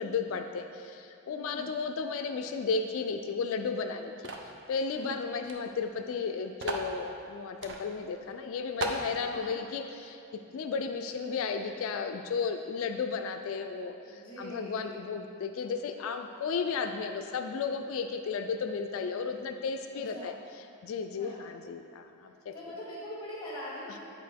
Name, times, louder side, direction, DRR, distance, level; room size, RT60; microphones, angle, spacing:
voice 1, 0.0-4.1 4.7-10.2 10.5-20.3 20.8-22.5, left 5 dB, 70° left, 6 dB, 0.3 m, -34 dB
voice 2, 1.3-1.7 4.9-5.2 9.3-9.6 14.0-14.9 20.1-20.4 21.2-21.4 22.5-24.0, left 1 dB, 20° left, -6 dB, 1.5 m, -42 dB
sound 1, 4.2-4.5 5.4-5.6 5.8-5.9 6.6-6.9 7.6-7.8 8.3-8.4 8.8-9.1, right 3 dB, 50° right, 0.5 m, -35 dB
8.7 x 4.7 x 3.4 m, 2.5 s
head